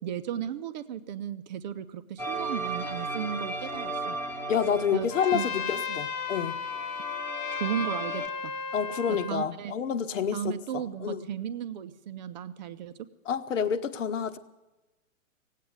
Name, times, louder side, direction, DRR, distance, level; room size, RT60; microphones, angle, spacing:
voice 1, 0.0-4.2 4.9-5.5 5.9-6.0 7.5-8.5 9.1-9.7 10.3-13.0, right 9 dB, 35° right, 0.7 m, -35 dB
sound 1, 2.2-8.3, right 2 dB, 5° left, 1.3 m, -36 dB
voice 2, 4.5-6.6 8.7-11.2 13.3-14.4, left 7 dB, 65° left, 1.2 m, -29 dB
Trumpet, 5.1-9.4, left 6 dB, 30° left, 1.1 m, -34 dB
17.5 x 8.4 x 9.6 m
hypercardioid pair, 150°, 40 cm